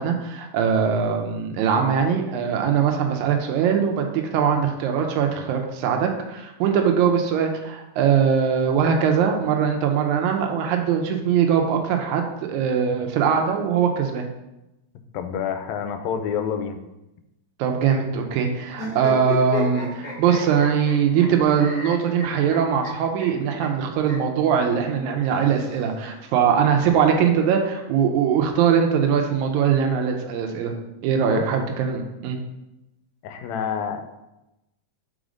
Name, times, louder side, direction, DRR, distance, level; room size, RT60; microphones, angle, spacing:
voice 1, 0.0-14.3 17.6-30.7 31.0-32.4, right 7 dB, 85° right, 3 dB, 2.1 m, -21 dB
voice 2, 15.1-16.8 31.3-31.5 33.2-34.2, left 7 dB, 80° left, 8 dB, 1.8 m, -28 dB
sound 1, 18.7-21.3 21.6-22.9 23.2-23.3 23.6-23.7 24.0-24.2 25.2-26.2, left 2 dB, 35° left, 1.5 m, -34 dB
5.1 x 4.1 x 5.0 m, 0.93 s
omnidirectional pair, 3.4 m